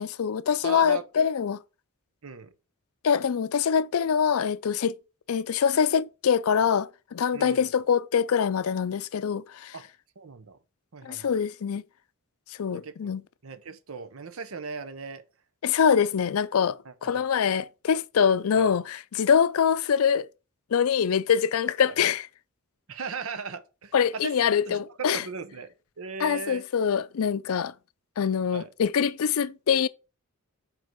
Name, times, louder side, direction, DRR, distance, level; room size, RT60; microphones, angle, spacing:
voice 1, 0.0-1.6 3.0-4.9 5.3-9.7 11.0-11.8 12.6-13.2 15.6-20.3 20.7-22.3 23.9-25.2 26.2-27.7 28.2-29.9, left 7 dB, 75° left, 0.4 m, -24 dB
voice 2, 0.6-1.0 2.2-2.5 7.3-7.7 9.7-9.8 10.2-10.6 10.9-11.4 12.7-13.1 13.4-15.2 16.8-17.2 18.6-18.7 22.9-24.3 24.6-26.6 28.5-28.7, right 5 dB, 70° right, 0.8 m, -38 dB
5.3 x 4.4 x 6.0 m
head